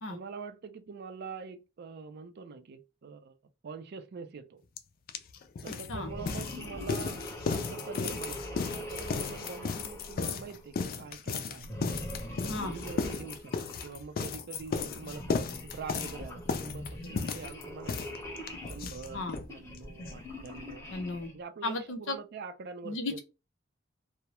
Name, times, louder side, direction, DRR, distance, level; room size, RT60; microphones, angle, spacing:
voice 1, 0.1-3.3 3.6-4.6 5.6-11.8 12.4-18.2 18.7-20.9 21.3-23.2, right 5 dB, 55° right, 0.4 m, -45 dB
sound 1, 4.8-4.9 5.1-19.5 19.7-19.8 20.1-20.2 20.4-20.5, left 5 dB, 50° left, 0.3 m, -35 dB
sound 2, 5.9-10.8 11.6-14.0 14.6-21.4, equal, 15° left, 0.7 m, -42 dB
voice 2, 20.9-21.3 21.6-22.2 22.8-23.2, left 2 dB, 75° left, 0.6 m, -35 dB
2.2 x 2.0 x 2.9 m
head